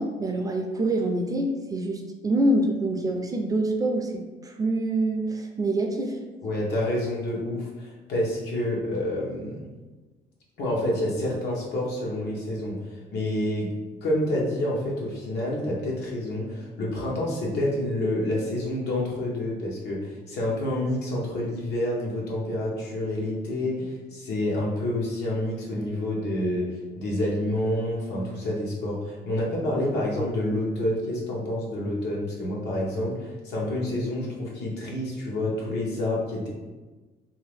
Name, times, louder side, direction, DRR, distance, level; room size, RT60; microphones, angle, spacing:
voice 1, 0.0-6.2, right 1 dB, 20° right, 3 dB, 0.4 m, -26 dB
voice 2, 6.4-9.7 10.6-13.7 14.0-36.5, left 1 dB, 75° left, -3 dB, 1.0 m, -28 dB
2.7 x 2.5 x 3.3 m, 1.2 s
cardioid pair, 110°, 17 cm